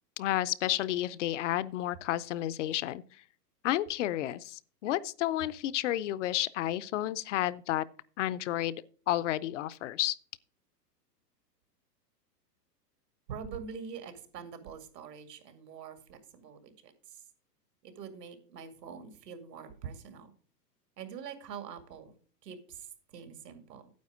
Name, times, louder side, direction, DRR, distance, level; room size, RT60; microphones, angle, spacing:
voice 1, 0.2-3.0 3.6-7.8 8.2-8.8 9.1-10.2, left 14 dB, 50° left, 0.5 m, -31 dB
voice 2, 13.3-17.3 17.8-20.3 21.0-22.1 22.4-23.9, right 7 dB, 75° right, 2.4 m, -45 dB
9.5 x 8.0 x 4.9 m
hypercardioid pair, 135°, 49 cm